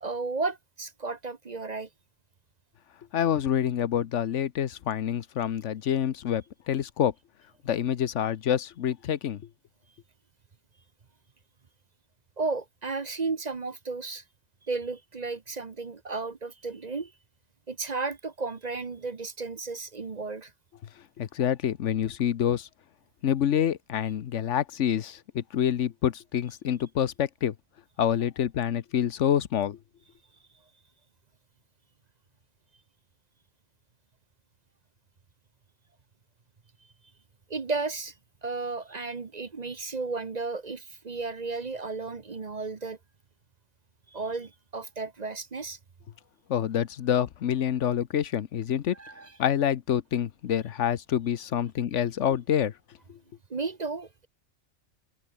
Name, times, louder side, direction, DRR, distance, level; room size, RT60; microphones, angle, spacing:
voice 1, 0.0-1.9 12.4-14.2 14.7-17.1 17.7-20.5 37.5-38.1 38.4-43.0 44.1-45.8 48.9-49.3 53.5-54.3, right 3 dB, 35° right, 1.0 m, -33 dB
voice 2, 3.1-7.1 7.6-9.4 21.2-22.7 23.2-27.5 28.0-29.8 46.5-49.0 49.4-52.7 53.1-53.2, left 9 dB, 75° left, 1.2 m, -27 dB
omnidirectional pair, 1.2 m